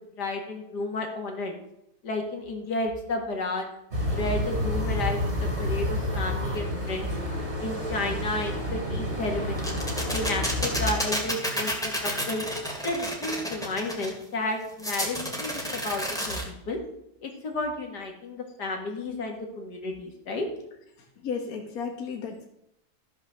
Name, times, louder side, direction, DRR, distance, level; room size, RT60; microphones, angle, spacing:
voice 1, 0.2-1.5 2.0-3.7 4.1-7.1 7.6-9.8 10.1-12.5 12.8-16.8 17.2-20.5, left 2 dB, 85° left, 2 dB, 2.4 m, -32 dB
sound 1, 3.9-10.9, left 1 dB, 40° right, 3.3 m, -29 dB
sound 2, 9.6-14.1 14.8-16.4, equal, ahead, 2.2 m, -30 dB
voice 2, 21.2-22.4, left 5 dB, 65° left, 2 dB, 1.7 m, -33 dB
13.0 x 6.3 x 6.3 m, 0.80 s
omnidirectional pair, 1.7 m